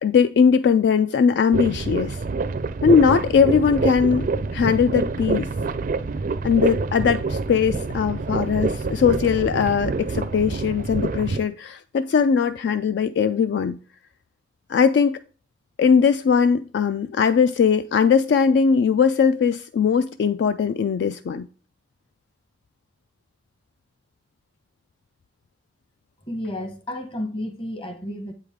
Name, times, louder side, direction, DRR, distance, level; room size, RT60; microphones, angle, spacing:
voice 1, 0.0-2.2 2.8-5.5 6.4-13.8 14.7-15.2 15.8-21.5, left 6 dB, 60° left, 0.3 m, -20 dB
sound 1, 1.5-11.4, right 3 dB, 45° right, 0.4 m, -26 dB
voice 2, 26.2-28.3, left 1 dB, 30° left, 1.0 m, -31 dB
7.7 x 4.9 x 3.6 m
head